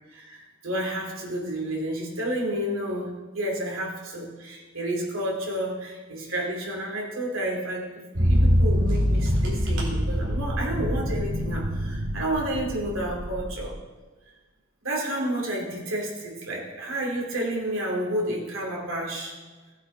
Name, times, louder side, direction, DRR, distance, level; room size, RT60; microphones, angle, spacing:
voice 1, 0.1-13.7 14.8-19.3, right 1 dB, 80° right, -1 dB, 2.5 m, -30 dB
sound 1, 8.2-13.7, equal, 65° right, 2.4 m, -25 dB
15.5 x 7.8 x 3.3 m, 1.3 s
head